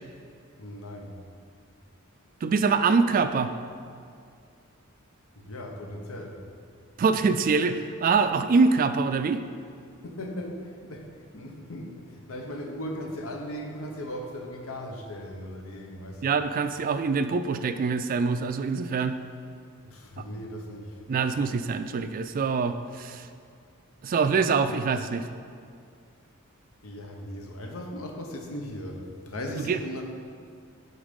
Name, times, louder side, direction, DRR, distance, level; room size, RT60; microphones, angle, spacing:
voice 1, 0.6-1.1 5.3-6.4 10.0-16.3 19.8-21.1 26.8-30.0, equal, 80° left, 2 dB, 1.0 m, -38 dB
voice 2, 2.4-3.5 7.0-9.4 16.2-19.1 20.2-20.3 21.1-23.3 24.0-25.3 29.6-29.8, right 4 dB, 40° right, 10 dB, 0.3 m, -24 dB
8.8 x 4.0 x 5.2 m, 2.3 s
head